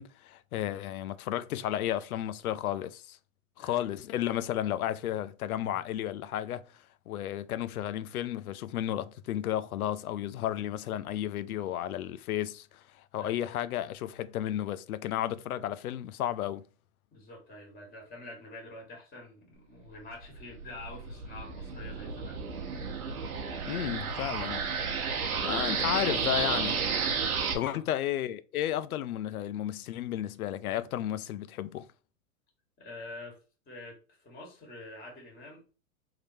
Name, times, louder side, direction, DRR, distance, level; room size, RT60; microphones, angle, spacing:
voice 1, 0.0-3.2 3.6-6.6 7.1-12.8 13.1-16.6 23.7-24.7 25.4-26.8 27.5-31.9, left 12 dB, 80° left, 0.5 m, -33 dB
voice 2, 3.6-3.9 13.2-13.4 17.1-22.4 25.2-25.5 27.6-27.8 32.8-35.6, left 2 dB, 20° left, 1.7 m, -47 dB
sound 1, 20.2-27.5, right 5 dB, 85° right, 1.0 m, -32 dB
3.7 x 3.2 x 2.7 m
hypercardioid pair, 110°, 43 cm